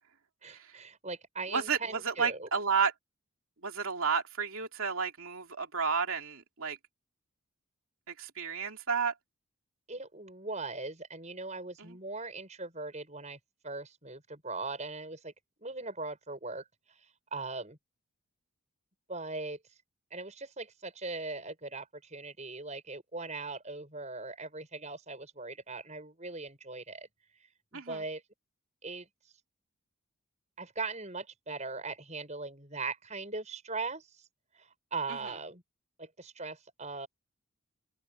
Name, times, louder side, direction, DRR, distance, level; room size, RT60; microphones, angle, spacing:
voice 1, 0.4-2.5 9.9-13.4 13.6-15.3 15.6-17.0 17.3-17.8 19.1-19.6 20.1-27.1 27.7-28.2 28.8-29.1 30.6-34.1 34.6-35.6 36.0-37.1, right 3 dB, 30° right, 7.4 m, -40 dB
voice 2, 1.5-2.9 3.6-6.8 8.1-9.1 11.8-12.0 27.7-28.0 35.1-35.3, right 5 dB, 70° right, 2.8 m, -32 dB
open air
head